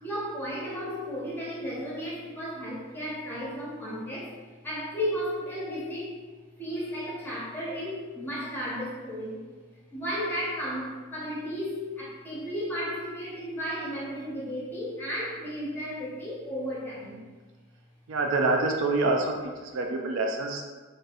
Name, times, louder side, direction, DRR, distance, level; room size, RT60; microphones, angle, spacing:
voice 1, 0.0-4.3 4.6-6.2 6.6-9.4 9.9-17.2, equal, 10° left, -7 dB, 0.8 m, -34 dB
voice 2, 18.1-20.6, right 3 dB, 65° right, 2 dB, 0.3 m, -26 dB
3.1 x 2.6 x 2.5 m, 1.3 s
head